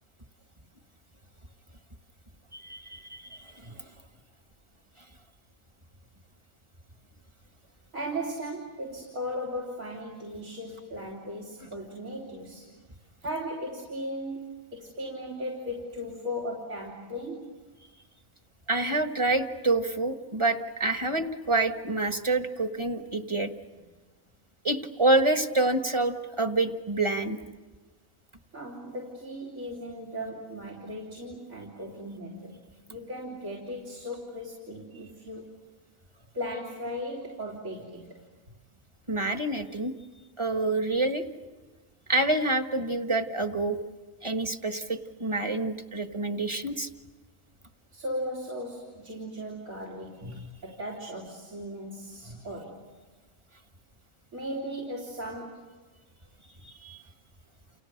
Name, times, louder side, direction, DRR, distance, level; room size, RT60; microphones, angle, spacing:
voice 1, 2.5-3.9 18.7-23.5 24.6-27.4 39.1-39.9 40.4-41.3 42.1-43.8 44.2-46.9 50.2-50.5 56.6-57.0, right 2 dB, 20° right, 7 dB, 1.4 m, -27 dB
voice 2, 7.9-12.7 13.2-17.5 28.5-35.5 36.3-38.3 47.9-52.9 54.3-55.8, equal, 85° right, 0 dB, 4.0 m, -37 dB
30.0 x 29.5 x 6.7 m, 1.3 s
omnidirectional pair, 1.4 m